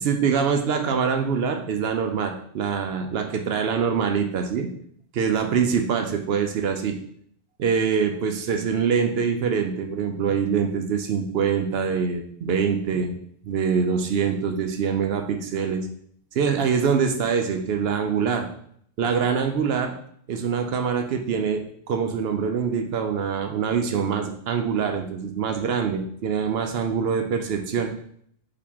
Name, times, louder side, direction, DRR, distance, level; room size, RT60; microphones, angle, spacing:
voice 1, 0.0-4.7 5.1-7.0 7.6-13.2 13.5-15.9 16.3-18.5 19.0-19.9 20.3-27.9, right 6 dB, 65° right, 5 dB, 0.8 m, -24 dB
5.2 x 2.8 x 3.5 m, 0.64 s
omnidirectional pair, 1.2 m